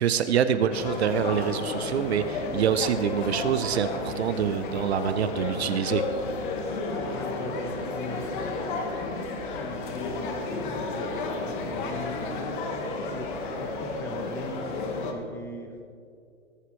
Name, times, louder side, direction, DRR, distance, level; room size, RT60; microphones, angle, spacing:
voice 1, 0.0-6.0, right 8 dB, 50° right, 11 dB, 0.7 m, -26 dB
sound 1, 0.7-15.1, left 3 dB, 35° left, 1.6 m, -32 dB
voice 2, 6.7-8.8 9.5-12.2 12.9-13.3 13.6-14.8 15.1-15.8, left 1 dB, 5° left, 1 dB, 1.0 m, -39 dB
16.5 x 14.5 x 3.2 m, 2.4 s
hypercardioid pair, 145°, 40 cm